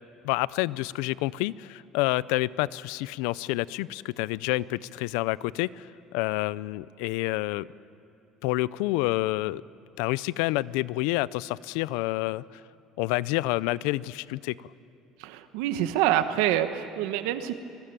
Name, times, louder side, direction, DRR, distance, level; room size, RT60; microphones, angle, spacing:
voice 1, 0.2-7.7 8.4-9.6 10.0-12.6 13.0-14.7, left 19 dB, 85° left, 20 dB, 0.5 m, -28 dB
voice 2, 15.2-17.6, right 12 dB, 85° right, 10 dB, 1.2 m, -26 dB
25.0 x 21.5 x 9.0 m, 2.8 s
cardioid pair, 155°, 0 cm